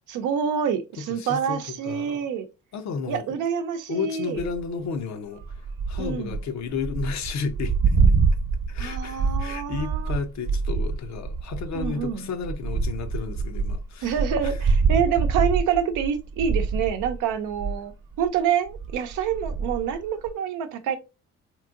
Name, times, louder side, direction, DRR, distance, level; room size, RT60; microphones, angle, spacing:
voice 1, 0.1-2.5 3.1-4.4 6.0-6.4 8.8-10.2 11.7-12.3 14.0-17.9 18.2-21.0, right 8 dB, 85° right, 0.6 m, -27 dB
voice 2, 1.0-2.3 2.7-3.2 3.9-5.4 5.9-8.0 8.7-14.1 14.4-14.5, left 5 dB, 65° left, 0.7 m, -32 dB
sound 1, 4.4-4.7 5.4-17.8 18.1-18.4 18.7-20.3, right 4 dB, 45° right, 0.9 m, -25 dB
3.6 x 3.0 x 2.4 m
cardioid pair, 90°, 30 cm